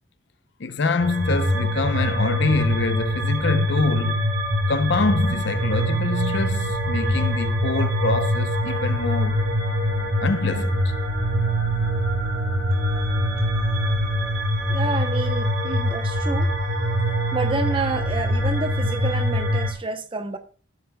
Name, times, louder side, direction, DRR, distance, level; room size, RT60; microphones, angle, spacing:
voice 1, 0.6-4.3 4.7-9.4 10.2-10.9, left 3 dB, 65° left, 0.6 m, -25 dB
sound 1, 1.0-19.7, equal, 90° right, 2.8 m, -23 dB
voice 2, 14.7-16.5 17.3-20.4, right 3 dB, 25° right, 0.7 m, -29 dB
14.5 x 8.1 x 2.2 m
head